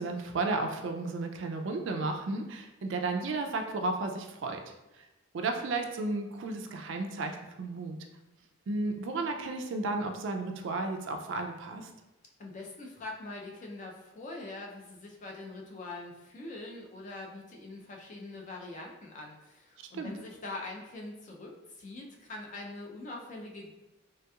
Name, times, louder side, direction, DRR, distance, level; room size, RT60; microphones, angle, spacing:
voice 1, 0.0-4.6 5.0-5.1 5.3-8.0 8.7-11.9 19.8-20.1, right 3 dB, 60° right, 5 dB, 0.3 m, -33 dB
voice 2, 12.4-21.5 21.8-23.8, left 2 dB, 35° left, -1 dB, 0.4 m, -43 dB
3.3 x 2.8 x 2.3 m, 0.97 s
head